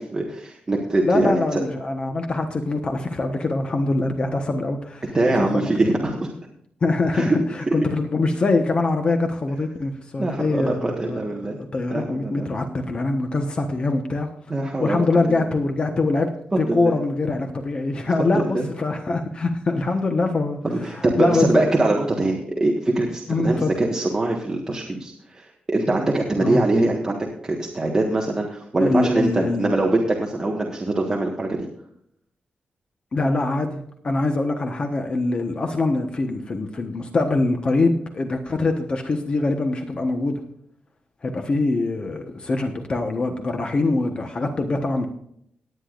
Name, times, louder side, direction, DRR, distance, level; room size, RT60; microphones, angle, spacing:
voice 1, 0.0-1.6 5.1-6.3 7.1-7.4 10.2-11.6 11.9-12.5 14.5-15.1 15.4-15.5 16.5-17.0 18.3-18.7 20.6-31.7, right 2 dB, 20° right, -1 dB, 1.5 m, -23 dB
voice 2, 1.0-5.7 6.8-14.3 14.8-21.7 23.3-23.7 26.4-26.6 28.8-29.7 33.1-40.4 41.2-45.1, left 3 dB, 35° left, 4 dB, 1.2 m, -24 dB
18.5 x 9.8 x 2.5 m, 0.71 s
wide cardioid pair, 175°, 3 cm